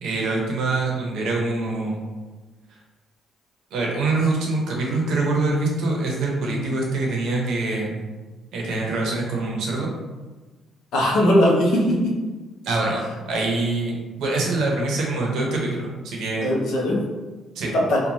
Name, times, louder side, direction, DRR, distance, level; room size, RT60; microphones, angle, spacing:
voice 1, 0.0-2.0 3.7-8.0 8.5-9.9 12.6-16.5 17.5-17.7, right 2 dB, 80° right, -1 dB, 0.7 m, -24 dB
voice 2, 10.9-12.1 16.4-17.0 17.7-18.0, equal, 80° left, -2 dB, 0.6 m, -19 dB
2.9 x 2.2 x 2.6 m, 1.3 s
cardioid pair, 90°, 0 cm